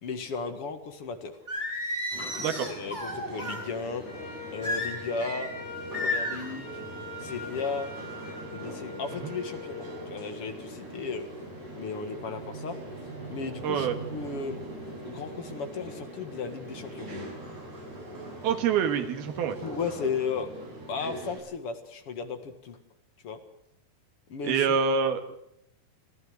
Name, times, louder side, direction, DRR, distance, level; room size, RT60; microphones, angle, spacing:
voice 1, 0.0-1.4 2.3-4.0 4.5-5.5 6.0-6.7 7.2-8.0 8.5-11.2 11.7-12.8 13.3-14.6 15.0-17.1 19.6-20.5 20.9-22.8 23.2-23.4 24.3-24.6, left 5 dB, 45° left, 7 dB, 2.1 m, -35 dB
Singing, 1.5-3.6 4.6-5.5 5.9-6.5, left 1 dB, 10° right, 4.5 m, -32 dB
sound 1, 2.1-21.4, right 1 dB, 45° right, 8.0 m, -42 dB
voice 2, 2.4-2.7 9.2-9.3 13.6-14.0 18.4-19.6 24.4-25.4, right 6 dB, 75° right, 7 dB, 3.6 m, -26 dB
Wind instrument woodwind instrument, 4.0-10.1, left 3 dB, 75° left, 9.7 m, -42 dB
26.0 x 15.5 x 7.9 m, 0.76 s
omnidirectional pair, 4.5 m